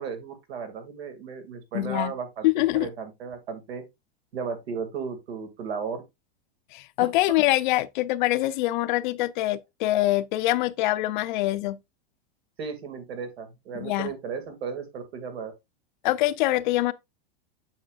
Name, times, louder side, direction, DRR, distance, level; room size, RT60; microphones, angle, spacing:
voice 1, 0.0-2.5 2.7-3.8 4.3-6.0 7.3-7.4 12.6-15.5, right 6 dB, 85° right, 2.3 m, -35 dB
voice 2, 1.7-2.1 2.4-2.9 6.7-11.8 13.8-14.1 16.0-16.9, left 16 dB, 50° left, 0.5 m, -24 dB
8.6 x 5.6 x 2.4 m
supercardioid pair, 155°, 30 cm